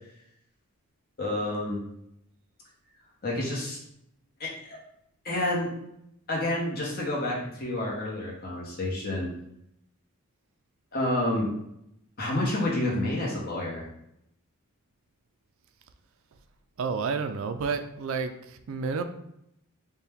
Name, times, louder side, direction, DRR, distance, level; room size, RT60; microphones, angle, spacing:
voice 1, 1.2-1.8 3.2-3.8 4.4-4.8 5.2-5.7 6.3-9.3 10.9-11.5 12.2-13.9, left 1 dB, 45° left, -4 dB, 1.1 m, -29 dB
voice 2, 16.8-19.0, right 5 dB, 65° right, 8 dB, 0.4 m, -30 dB
4.4 x 2.2 x 3.5 m, 0.78 s
head